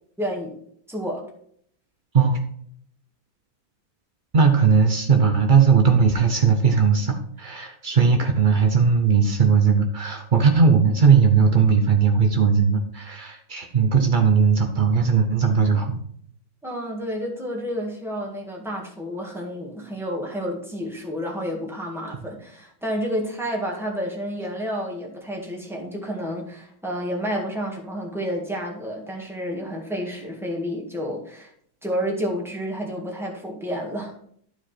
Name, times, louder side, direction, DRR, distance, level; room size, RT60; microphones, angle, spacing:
voice 1, 0.2-0.6 0.9-1.2 16.6-31.5 31.8-34.2, equal, ahead, -2 dB, 1.6 m, -30 dB
voice 2, 4.3-16.0, right 5 dB, 85° right, 4 dB, 0.4 m, -18 dB
12.0 x 4.8 x 4.4 m, 0.65 s
omnidirectional pair, 2.1 m